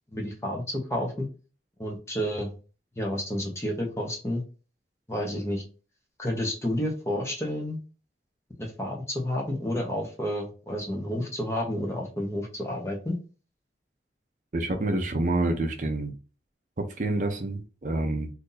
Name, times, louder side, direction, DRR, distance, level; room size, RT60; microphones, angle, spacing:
voice 1, 0.1-1.3 1.8-2.5 3.0-4.4 5.1-5.6 6.2-7.8 8.6-13.2, left 1 dB, 15° left, 0 dB, 0.8 m, -30 dB
voice 2, 14.5-16.1 16.8-18.3, right 2 dB, 45° right, 4 dB, 0.5 m, -28 dB
2.7 x 2.6 x 3.8 m, 0.34 s
head